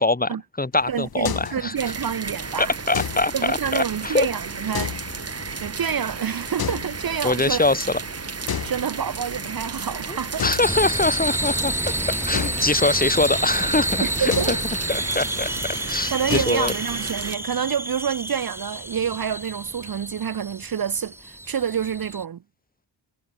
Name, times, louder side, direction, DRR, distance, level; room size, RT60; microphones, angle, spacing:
voice 1, 0.0-1.7 2.6-4.3 7.2-7.9 10.1-11.7 12.1-14.6 14.9-15.5 15.9-16.7, left 2 dB, 15° left, 2.0 m, -23 dB
sound 1, 0.7-17.1, left 8 dB, 45° left, 1.3 m, -36 dB
voice 2, 0.9-2.7 3.3-4.9 5.6-7.6 8.6-10.4 14.0-14.6 16.1-22.4, right 8 dB, 45° right, 0.9 m, -27 dB
sound 2, 1.8-17.4, right 4 dB, 30° right, 1.8 m, -33 dB
sound 3, 10.6-22.2, right 1 dB, 5° right, 1.7 m, -29 dB
cardioid pair, 75°, 49 cm